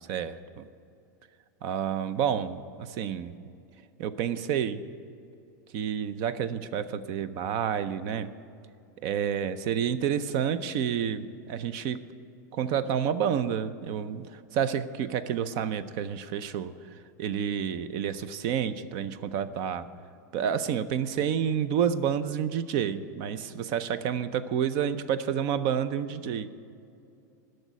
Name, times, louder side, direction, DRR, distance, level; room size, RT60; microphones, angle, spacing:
voice 1, 0.1-0.6 1.6-3.3 4.0-4.8 5.7-8.3 9.0-12.0 12.5-16.7 17.2-19.9 20.3-26.5, right 8 dB, 45° right, 14 dB, 0.6 m, -29 dB
12.0 x 6.5 x 9.2 m, 2.6 s
supercardioid pair, 145°, 10 cm